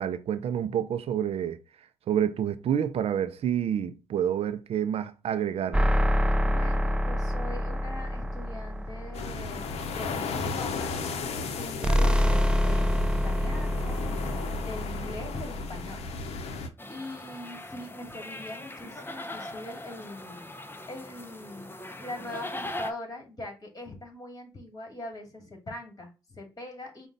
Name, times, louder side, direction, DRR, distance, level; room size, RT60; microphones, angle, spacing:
voice 1, 0.0-1.6 2.1-5.9, right 9 dB, 65° right, 0.5 m, -28 dB
sound 1, 5.7-10.3 11.8-16.6, equal, 10° right, 0.4 m, -27 dB
voice 2, 6.4-9.7 9.9-16.4 16.9-20.5 20.8-27.1, left 1 dB, 35° left, 2.5 m, -42 dB
sound 2, 9.1-16.7, left 4 dB, 70° left, 0.7 m, -35 dB
sound 3, 16.8-22.9, left 1 dB, 20° left, 0.7 m, -40 dB
5.1 x 2.4 x 3.9 m
supercardioid pair, 55°, 11 cm